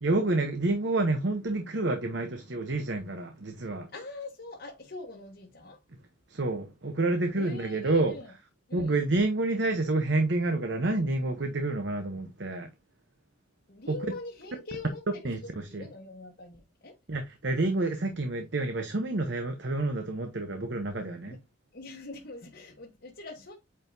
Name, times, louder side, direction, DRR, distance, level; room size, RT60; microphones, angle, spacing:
voice 1, 0.0-3.9 6.3-8.2 8.7-12.7 13.9-14.0 15.2-15.9 17.1-21.4, right 2 dB, 60° right, 0.9 m, -29 dB
voice 2, 3.9-5.8 7.3-8.3 8.7-9.0 13.7-15.3 15.7-16.9 21.3-21.4 21.7-23.6, left 3 dB, 55° left, 1.1 m, -43 dB
8.6 x 4.5 x 2.7 m
head